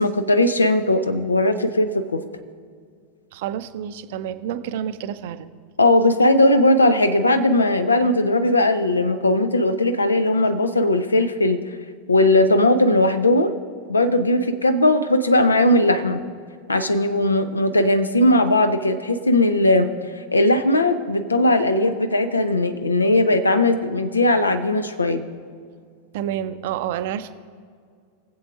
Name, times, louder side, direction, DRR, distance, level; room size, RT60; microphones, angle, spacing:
voice 1, 0.0-2.2 5.8-11.6 12.1-13.6 13.9-16.2 16.7-19.9 20.3-25.2, left 1 dB, 80° left, 9 dB, 0.7 m, -18 dB
voice 2, 3.3-5.5 26.1-27.3, right 10 dB, 50° right, 11 dB, 0.5 m, -29 dB
22.0 x 7.7 x 2.5 m, 2.1 s
figure-of-eight pair, 90°, 0 cm